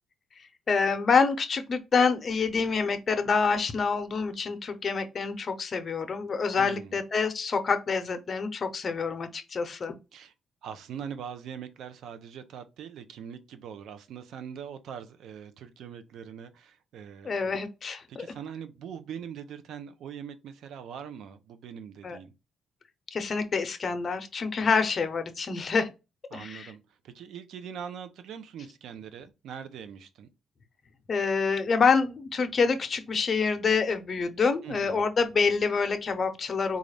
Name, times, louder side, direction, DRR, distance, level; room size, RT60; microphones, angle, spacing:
voice 1, 0.7-10.0 17.2-18.3 22.0-22.2 23.1-25.9 26.3-26.7 31.1-36.8, left 5 dB, 40° left, 0.7 m, -27 dB
voice 2, 6.5-7.0 10.1-10.3 10.6-17.5 18.1-22.3 24.6-24.7 26.3-30.3 34.6-35.1, right 8 dB, 75° right, 0.6 m, -42 dB
4.0 x 2.4 x 3.3 m
cardioid pair, 90°, 0 cm